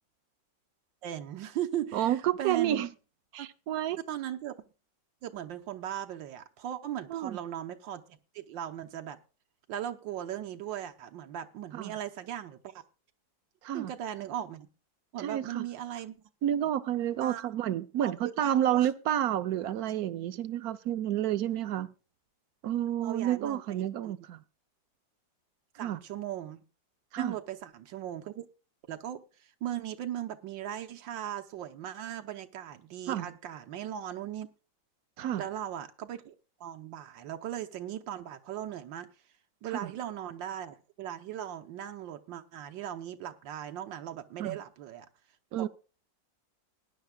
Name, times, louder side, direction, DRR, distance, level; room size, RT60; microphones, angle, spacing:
voice 1, 1.0-2.8 3.4-3.5 4.1-4.5 5.2-9.2 9.7-12.8 13.7-14.7 15.1-16.2 17.2-17.5 18.0-18.9 20.6-20.7 23.0-24.1 25.8-26.6 27.2-28.5 28.9-29.2 29.6-34.5 35.4-36.3 36.6-39.1 39.6-45.1 45.6-45.7, right 11 dB, 80° right, 1.6 m, -38 dB
voice 2, 1.9-2.9 3.3-4.0 7.1-7.4 11.7-11.9 13.6-13.9 15.2-15.7 16.4-21.9 22.6-24.4 25.7-26.0 27.1-27.4 33.1-33.3 35.2-35.4 39.8-39.9 44.4-44.6 45.5-45.7, right 11 dB, 65° right, 1.0 m, -30 dB
19.5 x 10.5 x 2.3 m
omnidirectional pair, 2.0 m